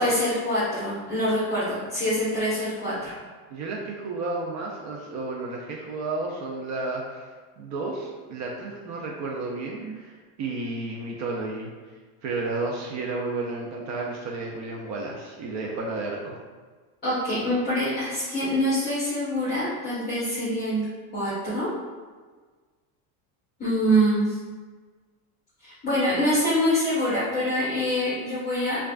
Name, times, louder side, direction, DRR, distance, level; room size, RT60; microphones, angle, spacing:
voice 1, 0.0-3.1 9.8-9.9 17.0-20.9 21.1-21.7 23.6-24.4 25.6-28.8, equal, 25° left, -11 dB, 1.1 m, -25 dB
voice 2, 3.5-7.3 7.6-11.7 12.2-16.4, right 3 dB, 45° right, -1 dB, 0.5 m, -32 dB
4.6 x 2.4 x 2.4 m, 1.4 s
supercardioid pair, 135°, 41 cm